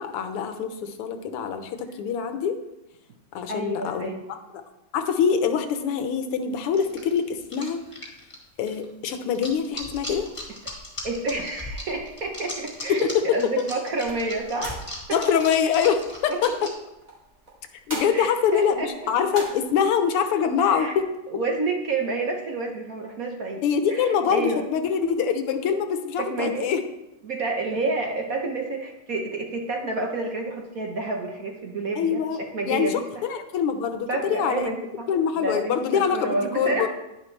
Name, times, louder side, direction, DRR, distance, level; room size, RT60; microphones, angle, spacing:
voice 1, 0.0-2.6 3.3-4.1 4.9-7.8 8.6-10.3 12.9-13.2 15.1-16.7 17.9-21.1 23.6-26.8 32.0-34.7 35.1-36.9, left 7 dB, 85° left, 8 dB, 1.8 m, -24 dB
voice 2, 3.5-4.2 11.0-13.0 13.3-14.8 16.3-16.7 18.1-18.9 20.6-20.9 21.3-23.6 23.9-24.7 26.2-26.7 27.2-32.2 32.5-32.9 34.1-35.1 35.4-36.9, right 2 dB, 50° right, 1 dB, 1.1 m, -29 dB
sound 1, 6.7-16.7, left 1 dB, 15° left, 2.1 m, -37 dB
sound 2, 14.0-19.8, right 1 dB, 20° right, 2.4 m, -42 dB
10.5 x 10.0 x 3.3 m, 0.94 s
omnidirectional pair, 2.4 m